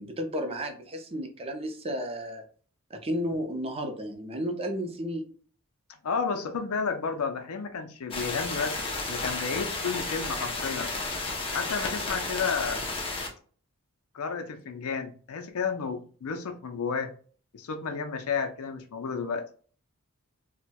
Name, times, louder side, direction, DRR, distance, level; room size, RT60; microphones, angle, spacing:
voice 1, 0.0-2.4 2.9-5.3, equal, 25° right, 0.5 m, -33 dB
voice 2, 6.0-11.0 11.5-12.8 14.1-17.1 17.5-19.4, left 5 dB, 70° left, 0.5 m, -32 dB
sound 1, 8.1-13.3, left 3 dB, 25° left, 0.7 m, -32 dB
4.2 x 2.1 x 2.2 m
head